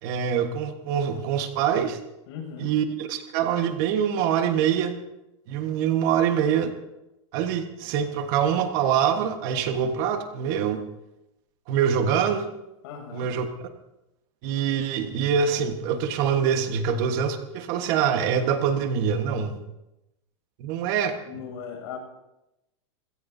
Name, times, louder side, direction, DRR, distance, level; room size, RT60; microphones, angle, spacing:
voice 1, 0.0-2.0 2.6-4.9 5.5-6.7 7.3-10.8 11.7-12.5 13.1-13.5 14.4-19.6 20.6-21.2, right 8 dB, 40° right, 6 dB, 1.4 m, -24 dB
voice 2, 2.3-2.7 12.8-13.3 21.2-22.0, left 7 dB, 55° left, 2 dB, 6.9 m, -38 dB
28.0 x 16.5 x 2.8 m, 0.93 s
supercardioid pair, 155°, 16 cm